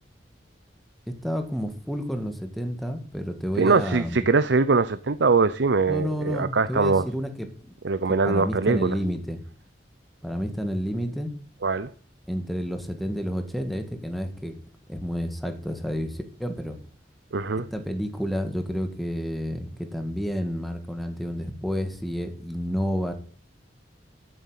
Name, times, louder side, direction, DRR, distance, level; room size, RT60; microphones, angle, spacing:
voice 1, 1.2-4.2 5.9-7.5 8.3-9.4 10.2-11.3 12.3-14.5 14.9-16.8 17.7-23.1, equal, ahead, 1.9 m, -30 dB
voice 2, 3.6-7.0 7.8-9.0 11.6-11.9 17.3-17.6, right 4 dB, 70° right, 0.6 m, -22 dB
14.0 x 7.8 x 8.1 m
head